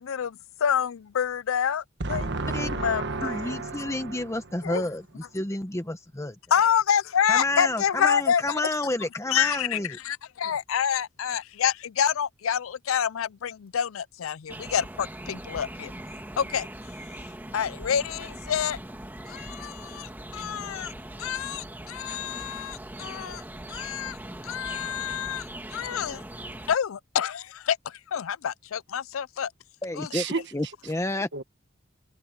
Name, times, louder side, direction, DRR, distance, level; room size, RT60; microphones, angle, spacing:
voice 1, 0.0-2.2 2.6-3.6 4.6-4.8 6.5-8.4 9.3-9.8 10.0-15.9 16.4-16.7 17.5-18.8 19.3-20.9 21.2-23.4 23.7-24.2 24.4-25.5 25.7-26.2 26.7-29.5 30.0-30.1, left 8 dB, 85° left, 0.5 m, -27 dB
voice 2, 2.0-4.4 30.1-30.5 31.3-31.4, right 3 dB, 60° right, 1.5 m, -31 dB
voice 3, 3.2-6.4 7.3-10.0 29.8-30.2 30.5-31.3, left 1 dB, 15° left, 0.9 m, -30 dB
sound 1, 14.5-26.8, right 1 dB, 10° right, 1.8 m, -40 dB
head